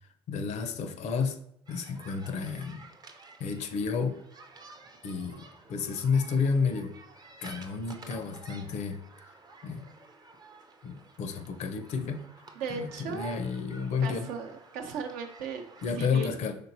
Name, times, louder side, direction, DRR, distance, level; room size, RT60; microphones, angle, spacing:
voice 1, 0.3-1.4 1.7-2.8 3.4-4.2 5.0-7.0 7.4-9.0 9.6-9.9 10.8-12.3 12.7-14.3 15.8-16.6, left 5 dB, 50° left, 8 dB, 0.6 m, -31 dB
sound 1, 1.7-16.0, right 3 dB, 25° right, 0.6 m, -52 dB
voice 2, 12.5-13.4 14.0-15.6 15.9-16.3, right 5 dB, 60° right, 3 dB, 0.7 m, -37 dB
5.1 x 3.9 x 2.7 m, 0.76 s
figure-of-eight pair, 55°, 15 cm